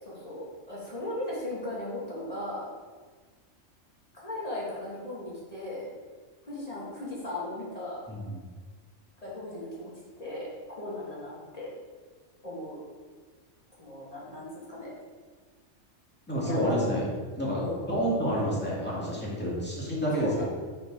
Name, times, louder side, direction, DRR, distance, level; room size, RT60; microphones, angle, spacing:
voice 1, 0.0-2.7 4.1-5.9 6.4-8.0 9.2-9.9 10.2-11.7 12.4-12.8 13.8-14.9 16.4-16.9 17.6-17.9 20.2-20.4, left 1 dB, 30° left, -7 dB, 2.5 m, -37 dB
voice 2, 8.1-8.5 16.3-17.0 17.4-20.4, equal, 10° left, -6 dB, 2.1 m, -29 dB
6.6 x 5.1 x 4.9 m, 1.4 s
omnidirectional pair, 1.3 m